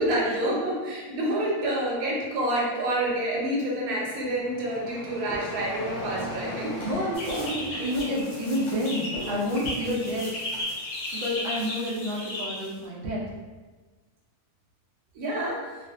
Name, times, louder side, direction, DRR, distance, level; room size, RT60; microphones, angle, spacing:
voice 1, 0.0-7.4 7.7-7.8 15.1-15.6, right 1 dB, 85° right, -3 dB, 1.2 m, -28 dB
sound 1, 4.0-10.6, left 1 dB, 80° left, 0.4 m, -39 dB
voice 2, 6.8-10.3 11.2-13.2, equal, 55° right, -5 dB, 0.7 m, -29 dB
sound 2, 7.1-12.8, left 1 dB, 55° left, 0.9 m, -35 dB
2.5 x 2.4 x 2.4 m, 1.3 s
omnidirectional pair, 1.5 m